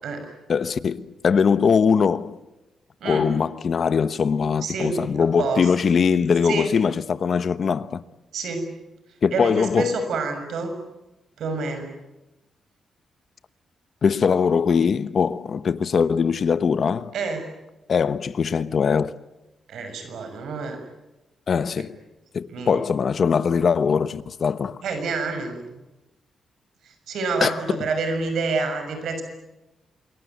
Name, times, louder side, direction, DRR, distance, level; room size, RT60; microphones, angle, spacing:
voice 1, 0.5-2.4 3.0-8.0 9.2-9.9 14.0-17.1 17.9-19.1 21.5-22.0 22.3-24.8 27.4-27.6, left 6 dB, 50° left, 1.1 m, -21 dB
voice 2, 3.0-3.3 4.6-5.0 5.4-5.7 6.4-6.7 8.3-8.7 9.3-10.7 11.4-11.9 17.1-17.4 19.7-20.8 21.8-21.9 22.5-22.8 24.8-25.6 26.8-29.2, right 3 dB, 80° right, 6.4 m, -28 dB
27.5 x 22.5 x 9.3 m
cardioid pair, 130°, 0 cm